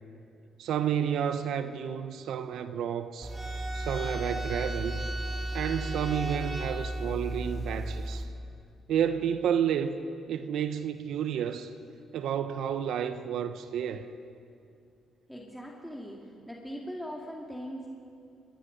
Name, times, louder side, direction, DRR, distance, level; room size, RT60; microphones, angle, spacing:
voice 1, 0.6-3.3 3.7-5.0 5.5-8.3 8.9-10.0 10.3-11.7 12.1-14.1, right 8 dB, 75° right, 1.0 m, -30 dB
sound 1, 3.2-8.2, right 1 dB, 25° right, 3.7 m, -34 dB
voice 2, 15.3-16.2 16.5-17.9, equal, ahead, 2.5 m, -40 dB
23.5 x 22.0 x 5.3 m
cardioid pair, 90°, 0 cm